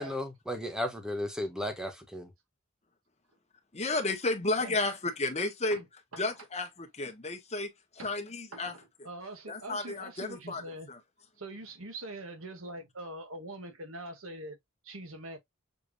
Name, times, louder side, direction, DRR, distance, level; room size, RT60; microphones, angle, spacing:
voice 1, 0.0-2.3, left 1 dB, 5° right, 1.1 m, -35 dB
voice 2, 3.7-5.8 6.2-7.7 8.0-8.7 9.5-10.6 10.9-11.0, left 2 dB, 30° left, 1.3 m, -32 dB
voice 3, 6.1-6.5 8.0-8.1 8.5-10.9 11.4-14.6 14.8-15.4, right 1 dB, 75° right, 1.5 m, -43 dB
6.8 x 2.8 x 2.7 m
head